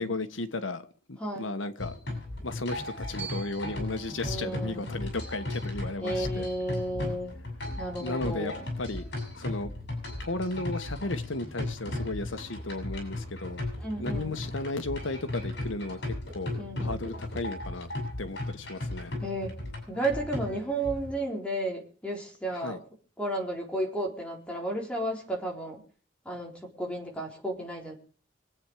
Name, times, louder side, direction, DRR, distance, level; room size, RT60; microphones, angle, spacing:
voice 1, 0.0-1.9 2.4-6.5 8.0-8.5 8.8-9.1 9.3-9.7 10.2-13.6 14.0-16.5 16.8-17.9 18.2-19.1 22.5-22.8, left 2 dB, 85° left, 10 dB, 1.5 m, -34 dB
voice 2, 1.2-1.5 4.2-4.9 6.0-7.3 7.8-8.7 13.8-14.4 16.6-17.0 19.2-22.8 23.2-25.8 26.2-27.9, right 1 dB, 5° left, -1 dB, 4.2 m, -33 dB
sound 1, 1.8-21.2, left 2 dB, 55° left, 7.3 m, -36 dB
Glockenspiel, 3.2-7.3, right 9 dB, 10° right, 3.7 m, -49 dB
24.5 x 9.1 x 4.9 m, 0.40 s
head